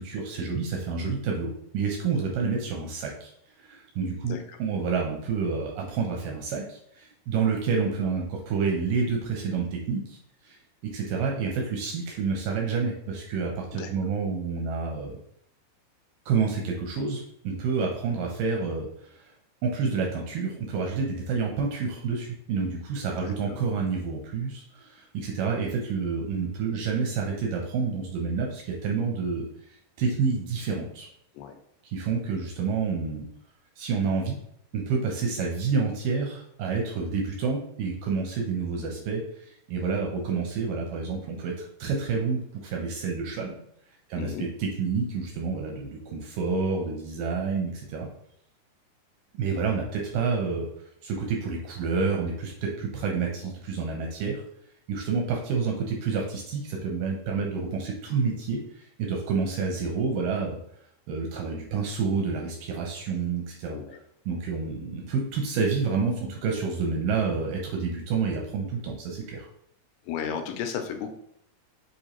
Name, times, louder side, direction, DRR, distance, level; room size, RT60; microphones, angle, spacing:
voice 1, 0.0-3.3 3.6-10.2 10.4-15.2 16.3-19.3 19.6-29.5 30.0-31.1 31.9-33.3 33.8-34.4 34.7-43.6 44.1-48.1 49.3-50.7 51.0-54.4 54.9-60.6 61.1-63.8 64.3-69.5, right 5 dB, 80° right, 0 dB, 1.9 m, -29 dB
voice 2, 4.2-4.6 13.7-13.9 23.2-23.6 31.3-31.6 44.1-44.5 63.7-64.0 70.0-71.2, left 7 dB, 85° left, 5 dB, 2.6 m, -34 dB
6.5 x 2.5 x 2.9 m, 0.70 s
omnidirectional pair, 4.6 m